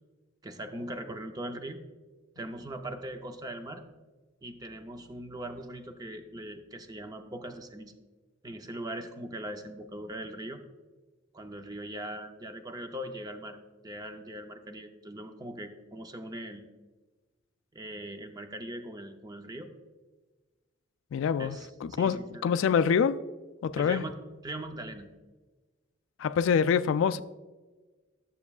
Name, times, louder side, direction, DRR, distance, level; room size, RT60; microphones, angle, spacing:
voice 1, 0.4-1.8 2.4-3.8 4.4-7.9 8.4-10.6 11.3-13.6 13.8-16.7 17.7-19.7 21.4-22.5 23.7-25.1, right 1 dB, 20° right, 0.5 m, -40 dB
voice 2, 21.1-23.2 23.6-24.0 26.2-27.2, left 7 dB, 75° left, 0.3 m, -26 dB
12.0 x 6.9 x 2.4 m
head